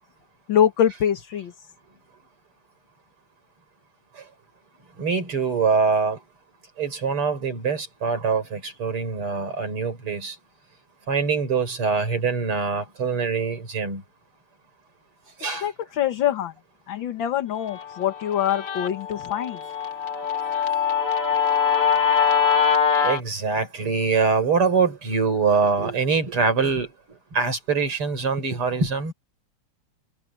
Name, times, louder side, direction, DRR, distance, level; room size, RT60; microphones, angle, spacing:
voice 1, 0.5-1.5 15.6-16.5 16.9-19.6, left 10 dB, 65° left, 2.1 m, -24 dB
voice 2, 5.0-6.2 6.8-10.4 11.1-14.0 15.4-15.7 23.0-26.9 27.3-29.1, right 5 dB, 85° right, 5.6 m, -24 dB
Guitar, 17.7-23.2, left 7 dB, 40° left, 1.7 m, -23 dB
open air
omnidirectional pair, 2.4 m